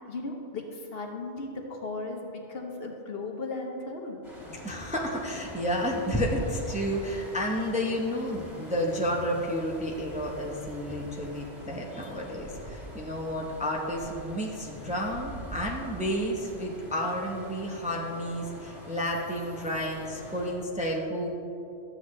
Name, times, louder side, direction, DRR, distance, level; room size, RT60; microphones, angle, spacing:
voice 1, 0.1-4.2, left 3 dB, 60° left, 2 dB, 1.1 m, -36 dB
sound 1, 4.2-20.5, equal, 25° left, 2.2 m, -44 dB
voice 2, 4.6-21.3, equal, 5° right, -1 dB, 0.7 m, -31 dB
12.5 x 7.8 x 3.2 m, 2.9 s
omnidirectional pair, 1.2 m